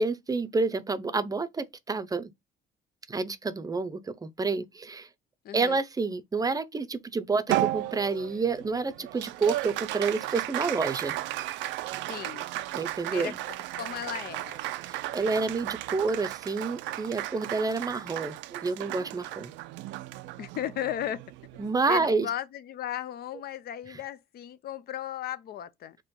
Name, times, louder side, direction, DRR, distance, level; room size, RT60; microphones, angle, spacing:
voice 1, 0.0-2.3 3.1-5.1 5.5-11.2 12.7-13.4 14.8-19.5 21.6-22.3, right 4 dB, 20° right, 0.6 m, -29 dB
voice 2, 5.4-5.8 12.1-12.5 13.1-14.6 20.4-21.2 21.9-26.0, left 11 dB, 60° left, 0.6 m, -36 dB
Applause, 7.5-22.1, right 16 dB, 90° right, 0.5 m, -35 dB
4.3 x 3.0 x 3.7 m
cardioid pair, 115°, 18 cm